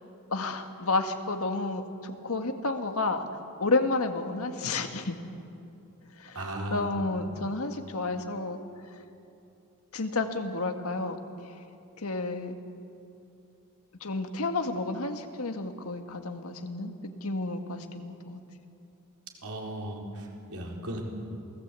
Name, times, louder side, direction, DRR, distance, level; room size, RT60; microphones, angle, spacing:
voice 1, 0.3-3.2 3.6-5.2 6.2-6.4 6.7-8.6 9.9-11.2 12.0-12.6 14.0-18.4, left 3 dB, 70° left, 6 dB, 1.9 m, -31 dB
voice 2, 6.3-6.9 19.4-21.0, right 1 dB, 75° right, 0 dB, 4.4 m, -36 dB
28.0 x 19.0 x 8.4 m, 2.6 s
head